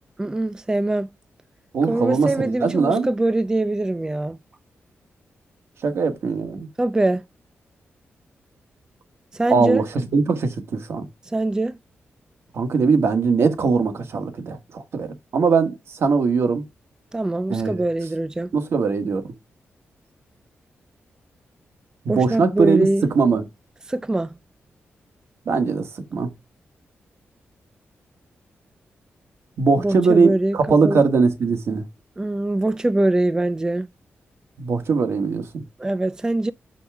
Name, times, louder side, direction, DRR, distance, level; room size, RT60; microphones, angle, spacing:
voice 1, 0.2-1.1 1.9-4.4 6.8-7.2 9.3-9.8 11.3-11.8 17.1-18.5 22.1-23.0 23.9-24.4 29.8-30.6 30.8-31.0 32.2-33.9 35.8-36.5, right 2 dB, 15° right, 0.4 m, -23 dB
voice 2, 1.7-3.1 5.8-6.7 9.5-9.8 10.1-11.1 12.5-16.6 17.5-17.8 18.5-19.2 22.0-22.9 23.1-23.4 25.5-26.3 29.6-31.8 34.6-35.6, right 4 dB, 70° right, 1.2 m, -20 dB
5.7 x 5.5 x 3.4 m
cardioid pair, 85°, 5 cm